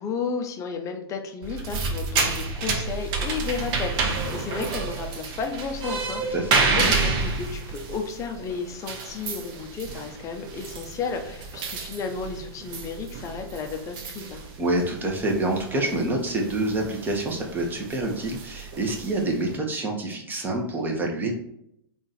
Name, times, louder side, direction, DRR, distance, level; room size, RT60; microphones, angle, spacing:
voice 1, 0.0-14.4, left 5 dB, 25° left, 4 dB, 0.7 m, -33 dB
sound 1, 1.4-19.6, right 4 dB, 35° right, 0.8 m, -30 dB
voice 2, 14.6-21.3, right 2 dB, 15° right, 0 dB, 1.0 m, -27 dB
3.8 x 2.5 x 4.0 m, 0.76 s
hypercardioid pair, 110°, 13 cm